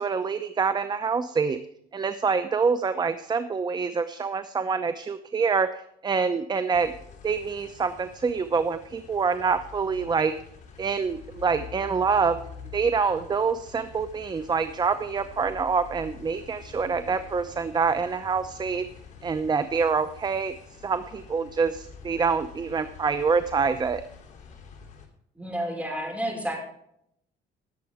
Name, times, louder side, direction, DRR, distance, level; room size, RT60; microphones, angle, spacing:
voice 1, 0.0-1.6 1.9-6.9 7.2-10.3 10.8-12.4 12.7-18.8 19.2-20.5 20.8-24.0, right 5 dB, 25° right, 11 dB, 0.7 m, -26 dB
sound 1, 6.7-25.1, left 6 dB, 45° left, 3.2 m, -47 dB
voice 2, 25.4-26.6, equal, 10° right, 0 dB, 5.4 m, -30 dB
19.5 x 7.5 x 3.6 m, 0.72 s
cardioid pair, 110°, 17 cm